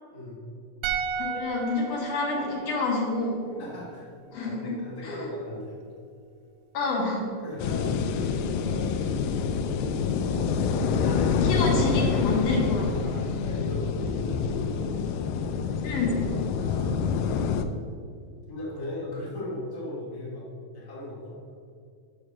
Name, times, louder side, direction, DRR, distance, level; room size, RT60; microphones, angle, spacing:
sound 1, 0.8-4.1 4.3-4.5, right 6 dB, 85° right, 2.3 m, -35 dB
voice 1, 1.2-3.4 4.3-4.6 5.0-5.3 6.7-7.3 11.0-13.1 15.8-16.2, left 3 dB, 65° left, -2 dB, 2.8 m, -28 dB
voice 2, 3.5-4.1 4.4-5.8 7.4-8.2 8.7-9.0 9.9-10.5 13.0-14.9 16.5-17.5 18.5-20.5 20.7-21.4, left 1 dB, 10° left, -6 dB, 1.4 m, -38 dB
sound 2, 7.6-17.6, left 5 dB, 85° left, 2.2 m, -26 dB
6.7 x 6.1 x 6.1 m, 2.3 s
omnidirectional pair, 4.0 m